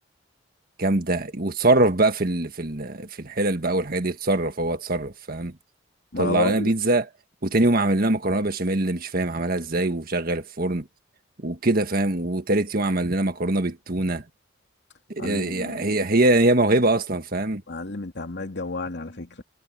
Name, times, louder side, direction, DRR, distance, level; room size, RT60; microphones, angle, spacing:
voice 1, 0.8-5.6 6.2-7.1 7.4-10.9 11.4-14.2 15.1-17.6, right 2 dB, 50° right, 1.7 m, -23 dB
voice 2, 6.1-6.7 15.2-16.0 17.7-19.4, left 2 dB, 65° left, 2.7 m, -31 dB
head